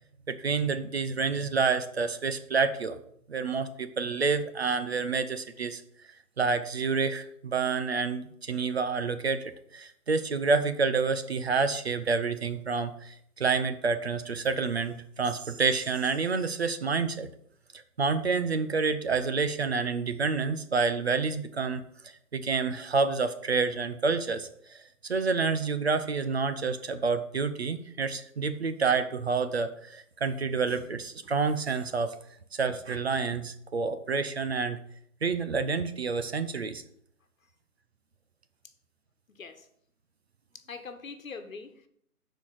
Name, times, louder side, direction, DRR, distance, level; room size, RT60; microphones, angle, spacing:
voice 1, 0.3-3.0 3.3-5.8 6.4-17.3 18.0-32.2 32.5-34.8 35.2-36.8, right 4 dB, 45° right, 10 dB, 0.7 m, -28 dB
voice 2, 39.3-39.7 40.5-41.9, left 4 dB, 60° left, 8 dB, 1.3 m, -43 dB
12.0 x 4.6 x 4.8 m, 0.69 s
figure-of-eight pair, 155°, 45 cm